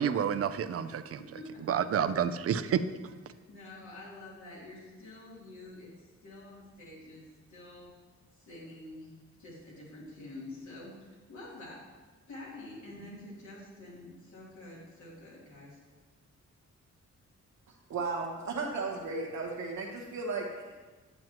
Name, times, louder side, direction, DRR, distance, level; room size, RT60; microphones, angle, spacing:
voice 1, 0.0-1.2 1.7-2.9, right 8 dB, 55° right, 11 dB, 0.4 m, -29 dB
voice 2, 3.3-5.9 6.2-7.9 8.4-9.1 9.4-11.8 12.3-15.8, left 2 dB, 85° left, -6 dB, 3.0 m, -47 dB
voice 3, 17.9-20.8, right 3 dB, 80° right, -2 dB, 1.1 m, -35 dB
9.3 x 8.9 x 3.0 m, 1.3 s
wide cardioid pair, 140°, 29 cm